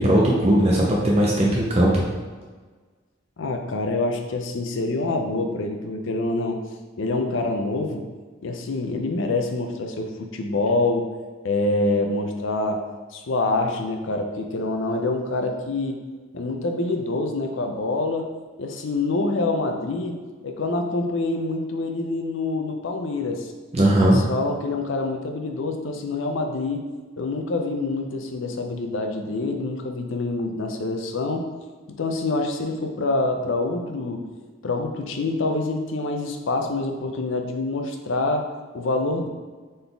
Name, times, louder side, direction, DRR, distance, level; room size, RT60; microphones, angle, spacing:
voice 1, 0.0-2.0 23.7-24.2, right 1 dB, 30° right, -3 dB, 0.5 m, -18 dB
voice 2, 3.4-6.6 7.0-8.1 8.4-11.1 11.4-12.9 13.1-16.0 16.3-18.3 18.6-23.5 24.0-26.8 27.2-31.5 32.0-34.2 34.6-39.3, left 2 dB, 65° left, 4 dB, 0.5 m, -26 dB
4.0 x 3.9 x 3.4 m, 1.4 s
head